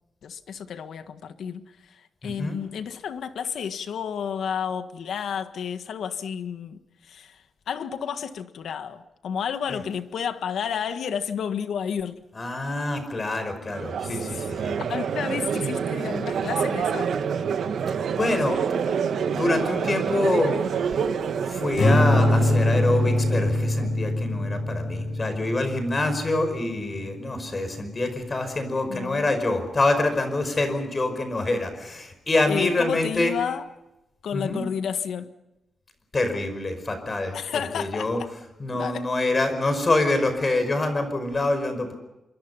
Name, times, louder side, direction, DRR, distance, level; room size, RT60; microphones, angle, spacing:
voice 1, 0.2-1.6 2.2-6.8 7.1-7.3 7.7-12.2 14.9-17.1 28.9-29.3 32.5-33.6 34.2-35.3 37.3-38.1 38.7-39.0, left 7 dB, 80° left, 1.6 m, -31 dB
voice 2, 2.2-2.6 9.7-9.8 12.3-14.8 18.2-18.6 19.3-21.0 21.4-33.4 34.3-34.6 36.1-38.2 38.6-41.9, left 2 dB, 25° left, 5.2 m, -26 dB
Crowd, 13.7-23.9, right 7 dB, 75° right, 1.8 m, -28 dB
Strum, 21.8-28.2, left 1 dB, 60° left, 7.6 m, -24 dB
27.0 x 24.0 x 5.6 m
wide cardioid pair, 140°, 0 cm